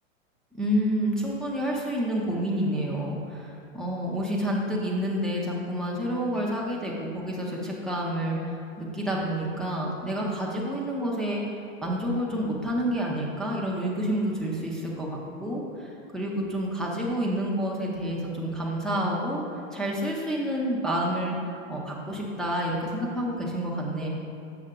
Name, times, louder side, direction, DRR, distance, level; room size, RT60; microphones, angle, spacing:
voice 1, 0.5-8.4 8.8-19.4 19.7-21.4 21.7-24.1, equal, ahead, -5 dB, 0.5 m, -29 dB
6.7 x 5.5 x 3.6 m, 2.8 s
hypercardioid pair, 130°, 41 cm